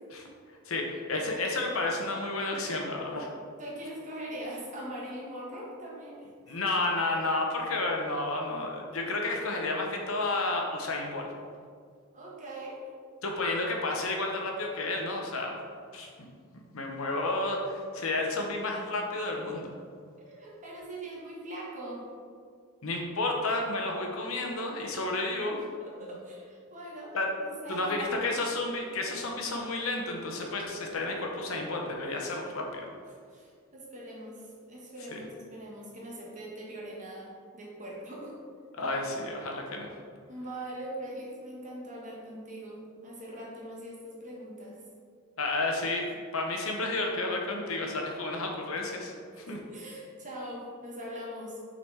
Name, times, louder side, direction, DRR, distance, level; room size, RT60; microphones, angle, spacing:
voice 1, 0.7-3.3 6.5-11.3 13.2-15.6 15.9-16.3 16.5-19.7 22.8-25.6 27.1-27.3 27.7-32.9 35.1-35.2 38.8-39.9 45.4-46.0 46.3-49.1 49.5-49.6, left 2 dB, 65° left, 1 dB, 0.9 m, -31 dB
voice 2, 3.6-6.6 7.0-7.2 12.1-12.8 20.2-22.1 25.8-28.4 33.3-38.4 40.3-44.8 49.3-51.6, right 1 dB, 35° right, -3 dB, 1.3 m, -42 dB
6.2 x 4.0 x 4.6 m, 2.2 s
head